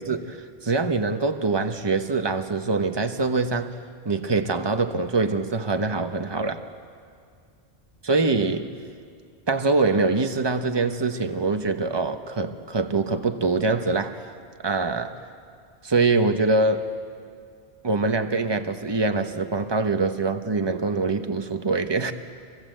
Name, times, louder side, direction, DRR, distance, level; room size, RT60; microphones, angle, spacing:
voice 1, 0.0-3.8 4.0-6.6 8.0-8.7 9.5-14.2 14.6-15.2 15.8-16.9 17.8-22.1, right 3 dB, 25° right, 7 dB, 1.1 m, -24 dB
28.0 x 24.0 x 8.0 m, 2.2 s
omnidirectional pair, 1.1 m